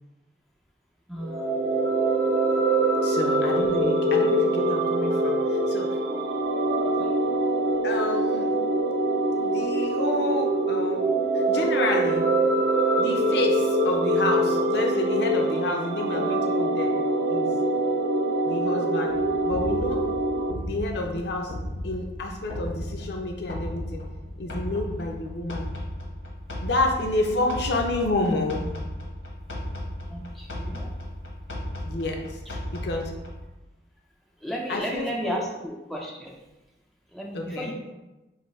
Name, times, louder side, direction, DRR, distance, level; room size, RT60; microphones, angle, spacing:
voice 1, 1.1-1.8 7.0-7.1 30.1-30.9 34.4-36.4 37.1-37.7, equal, ahead, -2 dB, 0.3 m, -34 dB
sound 1, 1.2-20.5, right 2 dB, 55° right, 0.5 m, -24 dB
voice 2, 3.0-6.0 7.8-8.5 9.4-11.0 11.3-12.3 13.0-16.9 17.3-17.5 18.4-19.2 19.4-20.0 20.6-21.5 21.8-24.0 24.4-25.7 26.6-28.6 31.8-33.1 34.7-35.4 37.3-37.7, left 2 dB, 65° left, 1 dB, 0.5 m, -29 dB
sound 2, 19.1-33.5, left 1 dB, 80° left, 1.1 m, -35 dB
5.6 x 2.6 x 3.1 m, 1.0 s
head